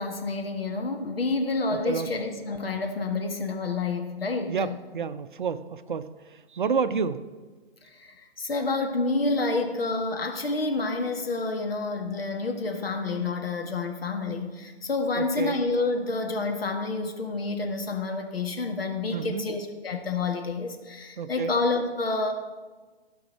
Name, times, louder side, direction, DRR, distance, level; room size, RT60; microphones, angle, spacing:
voice 1, 0.0-4.8 7.8-22.3, left 3 dB, 65° left, 3 dB, 1.6 m, -29 dB
voice 2, 1.7-2.1 4.5-7.3 15.1-15.6 19.1-19.5 21.2-21.5, right 6 dB, 50° right, 12 dB, 0.6 m, -30 dB
16.0 x 5.4 x 6.2 m, 1.3 s
figure-of-eight pair, 145°, 31 cm